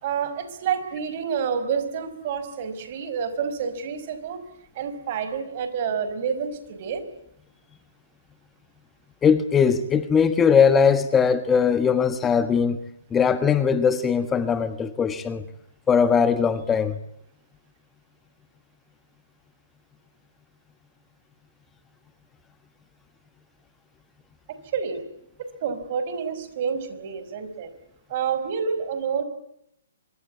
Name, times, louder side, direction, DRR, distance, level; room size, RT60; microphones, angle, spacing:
voice 1, 0.0-4.4 4.8-7.1 24.5-25.0 25.6-27.7 28.1-29.2, right 6 dB, 45° right, 5.2 m, -28 dB
voice 2, 9.2-12.8 13.1-15.4 15.9-17.0, left 6 dB, 15° left, 1.4 m, -20 dB
25.0 x 23.0 x 8.4 m
hypercardioid pair, 135°, 0 cm